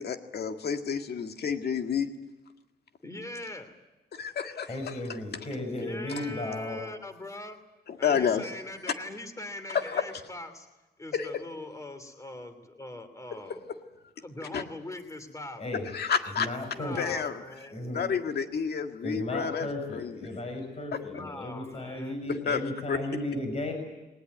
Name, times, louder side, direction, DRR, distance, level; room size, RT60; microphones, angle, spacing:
voice 1, 0.0-2.1 4.1-5.0 6.2-6.3 7.9-8.5 9.7-10.0 11.1-11.3 14.5-14.6 15.9-16.5 17.0-17.4 17.9-20.2 22.3-22.6 22.9-23.0, left 7 dB, 65° left, 6 dB, 1.9 m, -30 dB
voice 2, 3.0-3.7 5.8-7.6 8.0-10.7 11.0-13.6 14.2-15.7 16.7-17.8 21.1-22.2, left 2 dB, 15° left, 9 dB, 2.9 m, -41 dB
voice 3, 4.7-6.8 15.6-15.9 16.4-17.2 17.7-18.0 19.0-23.7, left 1 dB, 35° left, 4 dB, 6.1 m, -35 dB
21.0 x 19.5 x 9.4 m, 1.1 s
wide cardioid pair, 130°, 18 cm